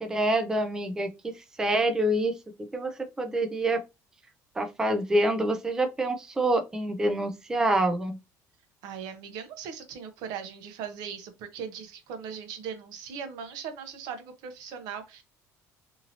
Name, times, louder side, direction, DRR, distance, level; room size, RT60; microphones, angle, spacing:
voice 1, 0.0-2.3 2.7-3.8 4.6-8.2, right 1 dB, 10° right, 0.3 m, -26 dB
voice 2, 8.8-15.2, right 7 dB, 85° right, 0.7 m, -39 dB
2.8 x 2.6 x 2.8 m
cardioid pair, 165°, 7 cm